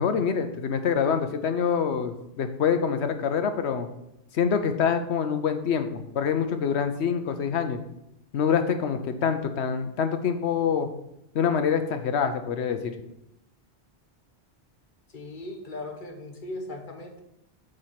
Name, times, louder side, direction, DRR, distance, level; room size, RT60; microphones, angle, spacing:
voice 1, 0.0-3.9 4.3-7.8 8.3-10.9 11.3-12.9, left 7 dB, 80° left, 8 dB, 1.1 m, -25 dB
voice 2, 15.1-17.2, left 2 dB, 50° left, 4 dB, 1.2 m, -38 dB
7.8 x 4.5 x 5.7 m, 0.83 s
omnidirectional pair, 1.1 m